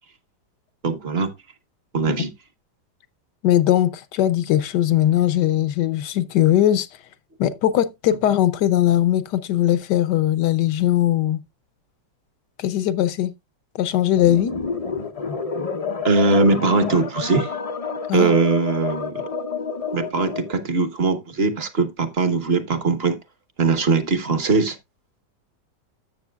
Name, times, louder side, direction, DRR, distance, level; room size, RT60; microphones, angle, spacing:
voice 1, 0.8-1.3 1.9-2.3 16.0-17.5 18.1-19.2 19.9-23.2 23.6-24.8, right 3 dB, 40° right, 1.0 m, -20 dB
voice 2, 3.4-6.9 7.4-11.4 12.6-13.3 13.8-14.5 18.1-18.4, left 12 dB, 75° left, 1.3 m, -20 dB
sound 1, 14.2-20.6, left 5 dB, 55° left, 0.4 m, -29 dB
13.0 x 7.4 x 2.3 m
omnidirectional pair, 1.9 m